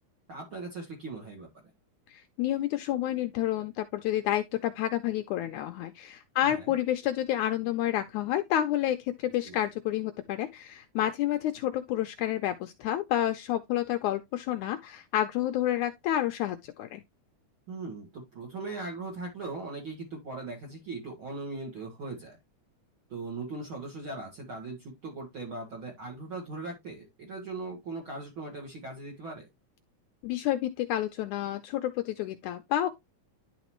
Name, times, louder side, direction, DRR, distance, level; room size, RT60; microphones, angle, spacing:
voice 1, 0.3-1.5 6.4-6.7 9.4-9.6 17.7-22.4 23.1-29.5, right 3 dB, 45° right, 2.3 m, -39 dB
voice 2, 2.1-17.0 30.2-32.9, left 12 dB, 75° left, 1.9 m, -29 dB
11.0 x 4.1 x 3.0 m
omnidirectional pair, 3.7 m